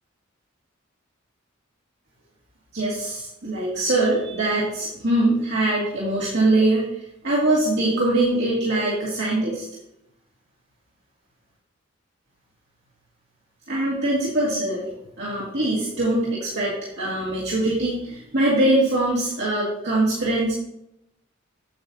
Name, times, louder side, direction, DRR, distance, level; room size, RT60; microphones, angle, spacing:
voice 1, 2.7-6.9 7.2-9.6 13.7-14.8 15.2-20.5, right 1 dB, 60° right, -7 dB, 2.3 m, -22 dB
8.7 x 8.2 x 2.8 m, 0.79 s
head